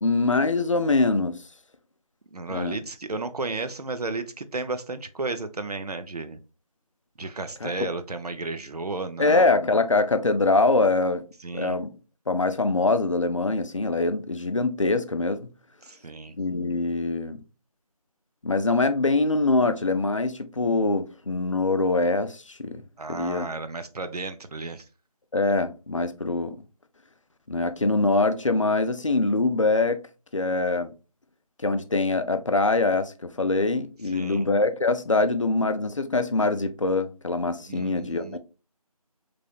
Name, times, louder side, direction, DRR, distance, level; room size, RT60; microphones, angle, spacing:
voice 1, 0.0-1.4 2.5-2.8 7.6-7.7 9.2-11.2 11.5-11.9 12.3-15.5 16.4-17.4 18.4-23.5 25.3-26.6 27.5-30.0 30.3-30.9 31.6-38.4, left 3 dB, 55° left, 0.4 m, -24 dB
voice 2, 2.3-6.4 7.2-9.4 11.4-11.8 15.8-16.4 23.0-24.8 34.1-34.5 37.7-38.4, right 3 dB, 80° right, 0.6 m, -33 dB
3.7 x 3.3 x 2.3 m
figure-of-eight pair, 175°, 20 cm